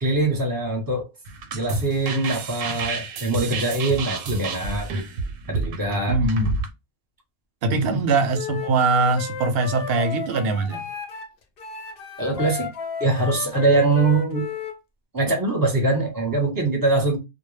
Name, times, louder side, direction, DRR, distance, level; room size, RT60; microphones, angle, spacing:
voice 1, 0.0-1.1 1.5-4.9 5.5-6.2 7.7-8.0 9.9-10.0 12.2-12.7 13.0-14.4 15.1-17.2, right 2 dB, 20° right, 0.7 m, -23 dB
sound 1, 1.2-6.7, right 3 dB, 90° right, 1.0 m, -29 dB
voice 2, 6.1-6.5 7.6-10.8, right 3 dB, 65° right, 0.7 m, -22 dB
Wind instrument woodwind instrument, 8.3-11.3 11.6-14.8, left 8 dB, 60° left, 0.7 m, -33 dB
2.1 x 2.1 x 3.1 m
omnidirectional pair, 1.3 m